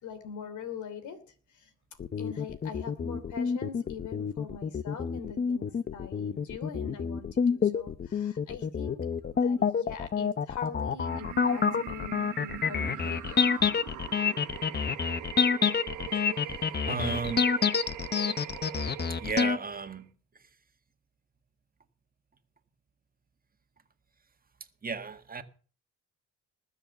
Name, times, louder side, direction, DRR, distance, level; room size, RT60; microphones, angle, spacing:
voice 1, 0.0-1.2 1.5-1.7 2.2-9.1 9.3-13.4, left 6 dB, 75° left, 3.2 m, -43 dB
sound 1, 2.0-19.6, left 6 dB, 35° left, 0.8 m, -28 dB
sound 2, 11.0-20.0, right 12 dB, 80° right, 1.7 m, -42 dB
voice 2, 16.8-17.5 19.2-20.5 24.8-25.4, right 4 dB, 30° right, 1.8 m, -34 dB
20.0 x 7.4 x 6.8 m
cardioid pair, 90°, 30 cm